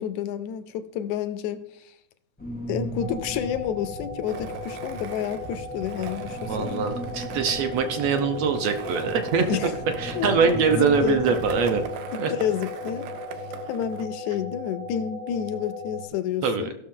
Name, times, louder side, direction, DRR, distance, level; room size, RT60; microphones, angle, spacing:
voice 1, 0.0-1.9 2.7-6.9 9.4-9.7 10.1-10.4 10.7-11.2 12.1-13.1 13.7-16.8, left 9 dB, 80° left, 1.8 m, -30 dB
sound 1, 2.4-11.9, equal, 10° left, 0.6 m, -38 dB
sound 2, 3.0-16.1, left 2 dB, 50° right, 1.2 m, -37 dB
Skateboard, 4.3-14.1, right 8 dB, 90° right, 2.4 m, -40 dB
voice 2, 6.5-9.5 10.0-11.8 12.2-12.3 16.4-16.7, right 5 dB, 70° right, 1.6 m, -23 dB
16.0 x 6.4 x 3.7 m
omnidirectional pair, 3.6 m